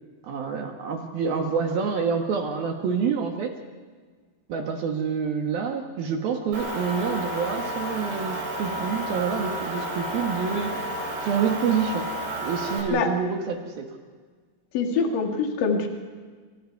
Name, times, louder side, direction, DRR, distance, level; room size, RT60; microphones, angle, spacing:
voice 1, 0.2-3.5 4.5-10.9 11.2-12.1 12.4-13.9, right 6 dB, 60° right, 3 dB, 2.8 m, -27 dB
Motor vehicle (road) / Engine, 6.5-12.8, right 1 dB, 90° right, 8.0 m, -31 dB
voice 2, 14.7-15.9, left 5 dB, 50° left, 2 dB, 3.4 m, -24 dB
28.5 x 27.5 x 4.7 m, 1.5 s
omnidirectional pair, 5.9 m